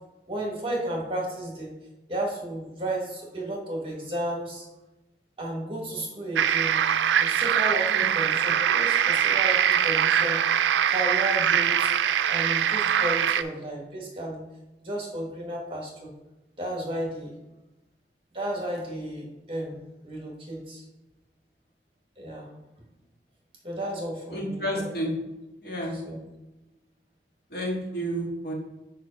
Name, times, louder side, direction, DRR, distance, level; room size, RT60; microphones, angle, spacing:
voice 1, 0.3-1.7 2.1-4.7 5.4-6.8 7.2-11.9 12.3-14.4 14.8-16.1 16.6-17.3 18.3-19.7 20.0-20.8 22.2-22.5 23.6-24.9 25.9-26.2, right 1 dB, 30° right, -1 dB, 1.5 m, -33 dB
sound 1, 6.4-13.4, right 9 dB, 90° right, 0.3 m, -23 dB
voice 2, 24.3-25.1 25.6-26.0 27.5-28.5, right 1 dB, 60° left, -2 dB, 1.7 m, -30 dB
4.9 x 4.6 x 5.4 m, 1.0 s
head